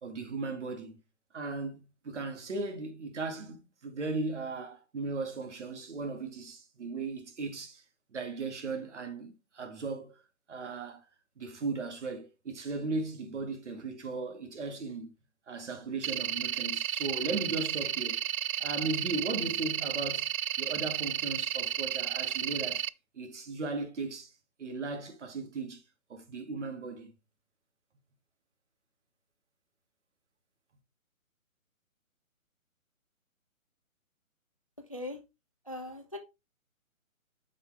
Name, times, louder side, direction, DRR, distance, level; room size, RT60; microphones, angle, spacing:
voice 1, 0.0-1.0 1.3-7.8 8.1-10.1 10.5-11.1 11.4-15.1 15.5-18.2 18.6-20.3 20.6-22.8 23.1-24.3 24.6-25.8 26.1-27.1, right 3 dB, 55° right, 2.2 m, -37 dB
sound 1, 16.0-22.9, right 10 dB, 80° right, 0.5 m, -33 dB
voice 2, 34.9-35.2 35.6-36.2, left 1 dB, 25° left, 0.5 m, -39 dB
8.8 x 5.4 x 3.4 m
hypercardioid pair, 165°, 42 cm